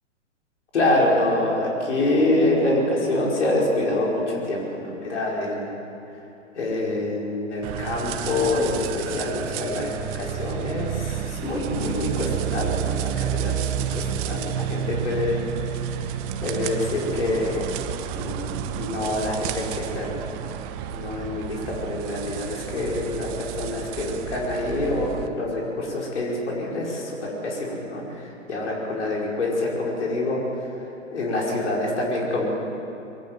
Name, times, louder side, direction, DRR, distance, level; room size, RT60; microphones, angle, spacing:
voice 1, 0.7-5.8 6.6-15.4 15.8-16.1 16.4-17.6 18.1-20.1 20.9-23.3 23.5-30.4 31.1-32.5, left 2 dB, 65° left, -3 dB, 5.1 m, -26 dB
sound 1, 7.6-25.3, right 10 dB, 30° right, 1.1 m, -30 dB
23.0 x 18.5 x 7.6 m, 2.9 s
figure-of-eight pair, 115°, 38 cm